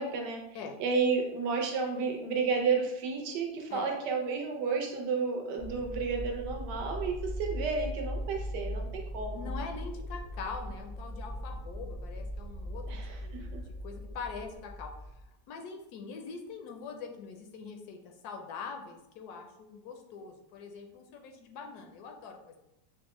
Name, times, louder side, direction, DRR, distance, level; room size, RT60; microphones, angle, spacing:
voice 1, 0.0-0.4 0.8-9.4 12.9-13.6, right 5 dB, 80° right, 2 dB, 1.3 m, -32 dB
sound 1, 5.6-15.2, equal, 5° left, 0.5 m, -39 dB
voice 2, 9.3-15.1 15.5-22.6, left 5 dB, 75° left, 3 dB, 1.0 m, -43 dB
6.1 x 2.1 x 3.0 m, 0.87 s
omnidirectional pair, 1.8 m